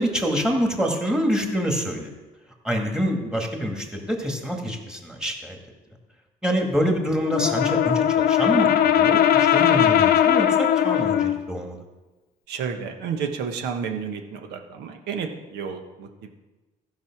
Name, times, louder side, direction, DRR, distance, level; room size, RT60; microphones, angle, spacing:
voice 1, 0.0-2.1 2.6-5.6 6.4-11.8, equal, 5° right, 2 dB, 1.9 m, -26 dB
Brass instrument, 7.2-11.4, left 10 dB, 65° left, 0.7 m, -19 dB
voice 2, 12.5-16.3, right 6 dB, 85° right, 5 dB, 1.3 m, -31 dB
14.0 x 5.6 x 6.0 m, 1.2 s
cardioid pair, 110°, 17 cm